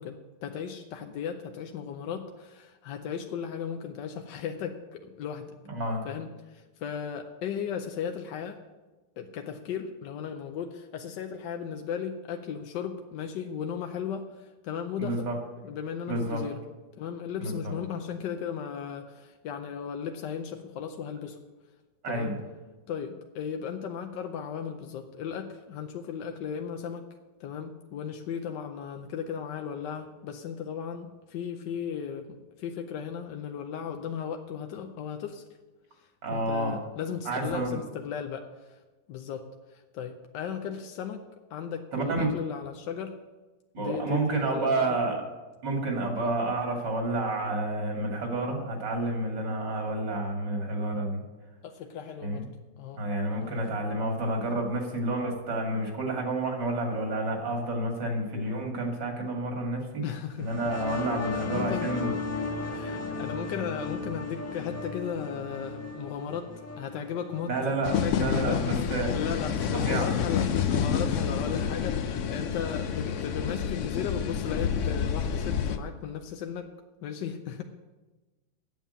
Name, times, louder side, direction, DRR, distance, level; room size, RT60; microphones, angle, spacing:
voice 1, 0.0-5.5 6.0-8.6 9.2-15.3 15.6-16.6 17.0-21.4 22.1-22.3 22.9-27.1 27.4-35.4 36.0-38.8 39.1-41.2 41.5-43.1 43.8-44.9 51.6-52.5 52.8-53.0 53.4-53.6 60.0-60.5 61.4-61.9 62.6-66.5 66.8-68.9 69.1-76.7 77.0-77.6, left 7 dB, 90° left, 5 dB, 1.3 m, -36 dB
voice 2, 5.7-6.1 15.0-15.3 16.1-16.4 17.4-17.7 22.0-22.4 36.2-36.8 37.3-37.7 41.9-42.3 43.7-45.2 45.6-51.2 52.2-52.5 52.9-60.0 60.4-62.1 67.5-69.1 69.7-70.1, right 2 dB, 90° right, 2 dB, 2.8 m, -30 dB
sound 1, 60.4-67.8, left 4 dB, 10° left, 1.1 m, -35 dB
sound 2, 67.8-75.8, left 7 dB, 65° left, 0.8 m, -28 dB
8.7 x 7.3 x 7.9 m, 1.2 s
omnidirectional pair, 1.9 m